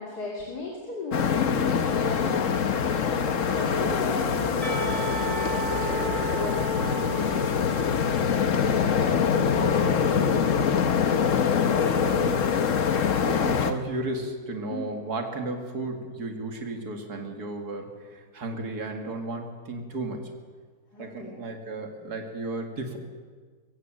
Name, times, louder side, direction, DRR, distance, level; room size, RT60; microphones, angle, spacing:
voice 1, 0.0-7.7 14.7-15.0 20.9-21.4, left 3 dB, 80° left, -3 dB, 3.5 m, -35 dB
sound 1, 1.1-13.7, left 7 dB, 55° left, 1.3 m, -24 dB
Percussion / Church bell, 4.6-9.7, right 5 dB, 20° right, 6.8 m, -36 dB
voice 2, 8.6-10.8 11.9-12.5 13.0-20.3 21.0-23.0, right 2 dB, 75° right, 3 dB, 2.7 m, -35 dB
23.5 x 16.5 x 7.7 m, 1.5 s
omnidirectional pair, 1.7 m